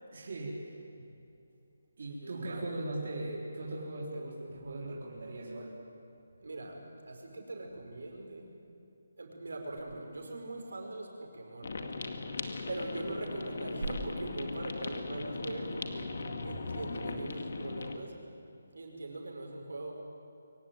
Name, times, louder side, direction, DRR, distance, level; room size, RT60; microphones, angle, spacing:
voice 1, 0.1-0.7 2.0-5.8, right 2 dB, 50° right, -3 dB, 3.8 m, -39 dB
voice 2, 2.1-2.7 6.4-8.5 9.2-12.0 12.7-16.2 16.4-18.2 18.7-20.0, right 2 dB, 80° right, 2 dB, 5.3 m, -41 dB
sound 1, 11.6-18.0, left 3 dB, 55° left, 2.2 m, -39 dB
24.0 x 17.5 x 9.0 m, 2.7 s
hypercardioid pair, 170°, 0 cm